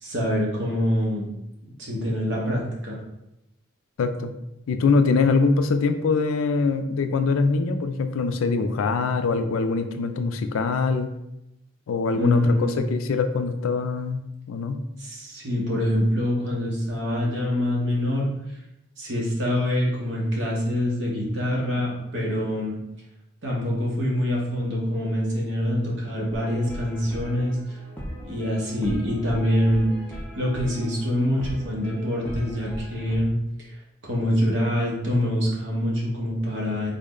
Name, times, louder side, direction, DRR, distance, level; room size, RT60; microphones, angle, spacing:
voice 1, 0.0-1.3 1.8-3.0 12.1-12.7 15.0-18.3 19.0-22.8 23.4-27.8 28.2-33.7 34.0-36.9, equal, 60° right, -3 dB, 1.0 m, -25 dB
voice 2, 4.0-4.3 4.7-11.1 11.9-14.8, left 4 dB, 85° left, 8 dB, 0.4 m, -23 dB
sound 1, 26.3-33.2, equal, 10° left, 0.5 m, -38 dB
3.6 x 2.1 x 3.7 m, 0.87 s
head